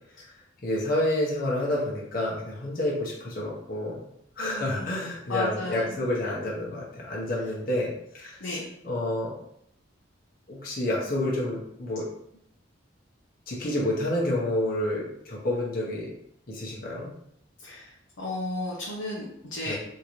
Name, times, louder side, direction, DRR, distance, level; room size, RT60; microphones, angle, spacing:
voice 1, 0.6-4.0 4.4-8.6 8.8-9.3 10.5-12.1 13.5-16.1 16.5-17.1 19.6-19.7, left 1 dB, 45° left, -4 dB, 0.9 m, -29 dB
voice 2, 4.4-4.9 5.3-5.9 8.4-8.7 17.6-17.9 18.2-19.7, left 2 dB, 75° left, -4 dB, 0.7 m, -33 dB
3.7 x 2.8 x 3.0 m, 0.73 s
head